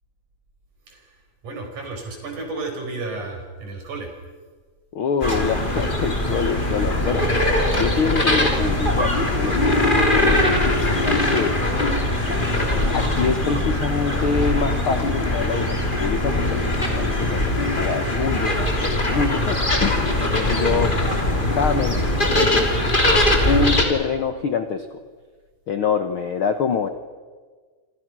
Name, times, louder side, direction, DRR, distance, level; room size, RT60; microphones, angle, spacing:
voice 1, 0.9-4.1, right 3 dB, 55° right, 3 dB, 6.6 m, -33 dB
voice 2, 4.9-7.3 7.7-9.7 10.1-11.6 12.9-22.7 23.4-24.9 25.7-26.9, left 5 dB, 80° left, 8 dB, 1.2 m, -25 dB
sound 1, 5.2-23.8, left 1 dB, 15° left, 3.0 m, -21 dB
28.5 x 26.5 x 6.2 m, 1.5 s
omnidirectional pair, 4.2 m